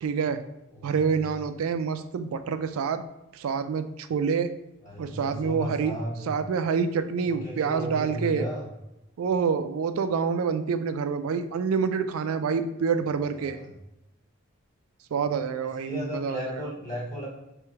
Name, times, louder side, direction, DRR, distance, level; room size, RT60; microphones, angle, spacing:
voice 1, 0.0-0.4 0.8-3.0 3.3-4.5 5.0-5.9 6.3-8.5 9.2-13.6 15.1-16.7, right 6 dB, 80° right, 9 dB, 0.3 m, -27 dB
voice 2, 0.7-1.2 4.8-6.3 7.2-8.7 13.3-13.7 15.6-17.3, equal, 35° left, -6 dB, 1.5 m, -35 dB
3.3 x 3.1 x 4.6 m, 0.93 s
head